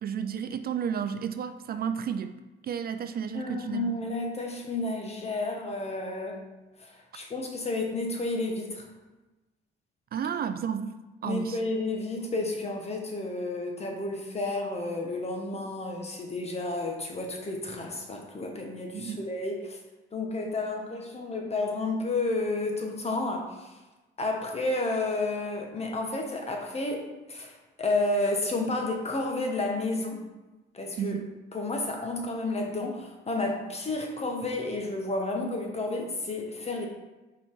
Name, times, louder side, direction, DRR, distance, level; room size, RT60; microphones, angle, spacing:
voice 1, 0.0-2.4 2.6-3.9 10.1-10.9 11.2-11.6 18.9-19.3 31.0-31.3, right 8 dB, 50° right, 9 dB, 0.4 m, -32 dB
voice 2, 3.3-6.4 6.8-8.9 11.2-19.8 20.1-23.4 24.2-27.0 27.3-27.5 27.8-30.3 30.7-31.2 31.5-36.9, left 2 dB, 30° left, 2 dB, 1.3 m, -31 dB
5.4 x 4.1 x 4.7 m, 1.1 s
cardioid pair, 90°, 20 cm